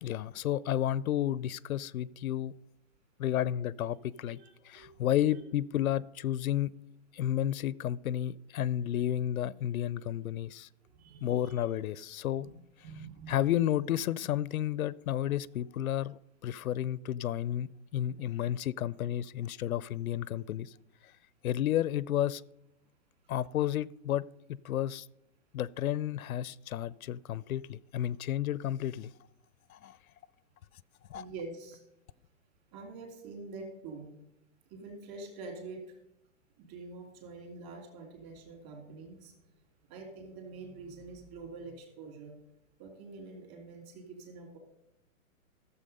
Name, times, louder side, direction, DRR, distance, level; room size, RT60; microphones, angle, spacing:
voice 1, 0.0-2.5 3.2-4.4 4.7-6.7 7.1-10.7 11.2-12.5 13.3-20.7 21.4-22.4 23.3-25.0 25.5-29.1 29.7-30.0 31.1-31.2, left 11 dB, 80° left, 0.5 m, -32 dB
voice 2, 4.3-5.4 8.7-8.8 10.8-11.7 12.4-13.5 31.1-31.8 32.7-34.1 34.7-36.0 36.6-39.3 39.9-42.4 42.8-44.6, right 3 dB, 30° right, 2.9 m, -46 dB
14.0 x 7.1 x 5.4 m
hypercardioid pair, 160°, 42 cm